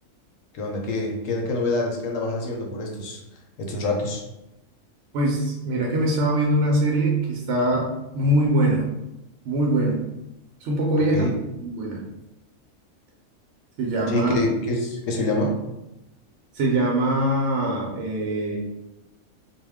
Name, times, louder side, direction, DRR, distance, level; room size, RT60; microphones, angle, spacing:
voice 1, 0.5-3.2 3.6-4.2 11.1-11.3 14.1-15.6, left 2 dB, 70° left, 0 dB, 0.9 m, -26 dB
voice 2, 5.1-8.8 9.5-10.0 10.6-11.3 11.6-12.0 13.8-14.4 16.5-18.6, right 1 dB, 65° right, -2 dB, 0.8 m, -22 dB
2.3 x 2.1 x 3.4 m, 0.92 s
omnidirectional pair, 1.4 m